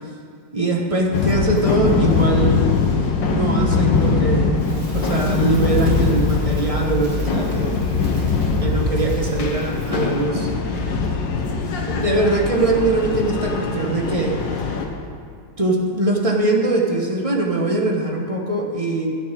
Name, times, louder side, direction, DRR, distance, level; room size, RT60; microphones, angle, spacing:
voice 1, 0.5-2.7 3.2-8.2 8.6-10.5 11.8-14.4 15.6-19.1, right 2 dB, 25° right, 0 dB, 1.0 m, -22 dB
sound 1, 1.1-14.9, left 4 dB, 85° left, 1.8 m, -21 dB
Crackle, 4.6-10.3, right 1 dB, 65° right, 3.3 m, -41 dB
11.0 x 6.1 x 8.9 m, 2.2 s
omnidirectional pair, 1.9 m